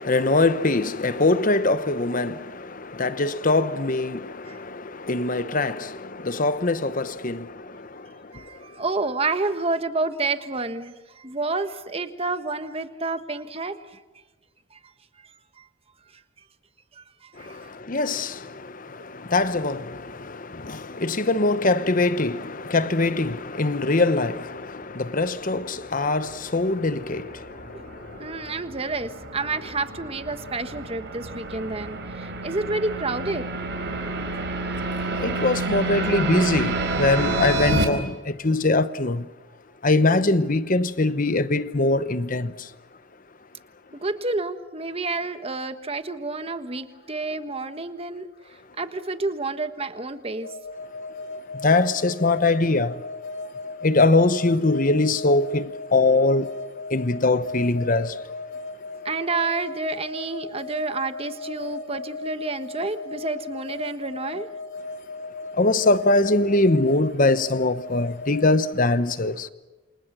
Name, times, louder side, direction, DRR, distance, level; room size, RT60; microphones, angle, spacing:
voice 1, 0.0-7.5 17.9-18.4 19.3-27.3 35.2-39.3 39.8-42.5 51.6-52.9 53.8-56.5 56.9-58.1 65.6-69.5, left 2 dB, 40° left, 1.0 m, -22 dB
voice 2, 8.3-13.7 15.6-15.7 17.0-17.1 17.4-17.7 28.2-33.4 44.0-48.3 48.8-50.5 59.0-64.5, right 3 dB, 30° right, 1.4 m, -29 dB
sound 1, 26.4-37.8, right 2 dB, 55° right, 4.3 m, -29 dB
sound 2, 50.4-68.8, left 3 dB, 70° left, 2.9 m, -37 dB
28.5 x 27.0 x 6.2 m
head